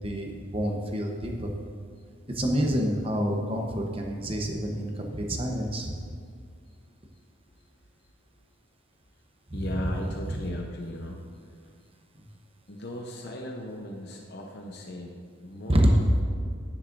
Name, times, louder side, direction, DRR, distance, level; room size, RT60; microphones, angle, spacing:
voice 1, 0.0-1.5 2.3-5.9 10.3-10.4 15.7-15.9, equal, 25° right, 1 dB, 0.9 m, -27 dB
voice 2, 9.5-11.2 12.7-15.2 15.4-16.2, left 1 dB, 50° left, 0 dB, 0.8 m, -37 dB
10.0 x 9.6 x 2.6 m, 2.1 s
head